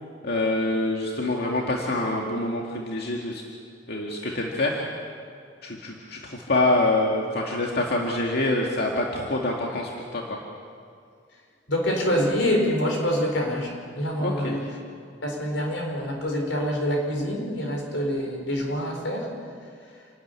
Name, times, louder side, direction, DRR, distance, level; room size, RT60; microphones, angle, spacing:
voice 1, 0.2-3.4 3.9-4.8 5.6-10.4 14.2-14.6, left 2 dB, 60° left, -1 dB, 2.1 m, -26 dB
voice 2, 11.7-14.7 15.2-19.3, equal, 90° left, 1 dB, 5.2 m, -26 dB
28.5 x 12.5 x 9.7 m, 2.2 s
head